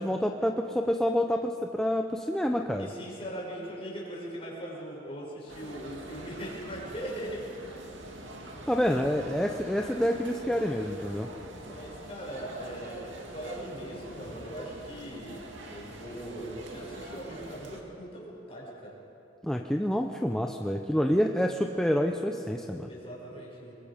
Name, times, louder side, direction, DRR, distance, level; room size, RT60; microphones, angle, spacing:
voice 1, 0.0-2.9 8.7-11.3 19.4-22.9, equal, 5° left, 3 dB, 0.7 m, -28 dB
voice 2, 2.8-7.5 11.5-19.0 22.9-23.7, right 1 dB, 30° left, -3 dB, 6.2 m, -40 dB
sound 1, 5.5-17.8, right 1 dB, 70° right, 2.5 m, -44 dB
26.0 x 23.0 x 5.2 m, 2.9 s
head